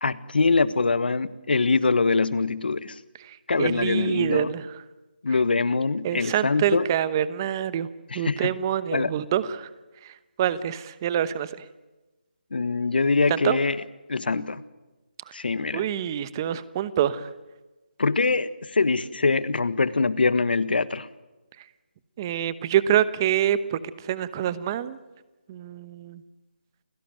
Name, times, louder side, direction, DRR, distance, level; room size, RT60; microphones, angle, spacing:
voice 1, 0.0-2.9 3.5-4.5 5.2-6.9 8.1-8.5 8.9-9.1 12.5-13.8 14.1-14.6 15.3-15.8 18.0-21.1, left 4 dB, 65° left, 15 dB, 1.5 m, -23 dB
voice 2, 3.6-4.7 6.0-7.9 8.1-9.7 10.4-11.5 13.3-13.6 15.7-17.3 22.2-23.8 24.0-25.0 25.5-26.2, right 10 dB, 20° right, 16 dB, 1.0 m, -26 dB
29.5 x 17.5 x 9.2 m, 1.1 s
figure-of-eight pair, 165°, 6 cm